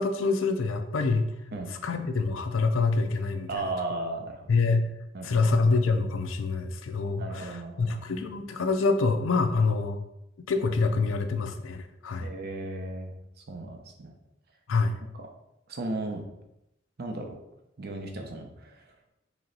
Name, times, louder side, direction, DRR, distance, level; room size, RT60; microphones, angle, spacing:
voice 1, 0.0-1.3 1.8-3.7 4.5-4.9 5.2-10.0 10.5-12.3 14.7-15.0, left 3 dB, 85° left, 7 dB, 0.4 m, -26 dB
voice 2, 3.5-4.5 5.1-5.5 7.2-8.0 9.5-9.6 12.2-13.1 13.5-14.1 15.7-16.2 17.0-17.3 17.8-18.8, right 2 dB, 55° right, 4 dB, 0.6 m, -35 dB
3.2 x 3.0 x 3.8 m, 0.85 s
head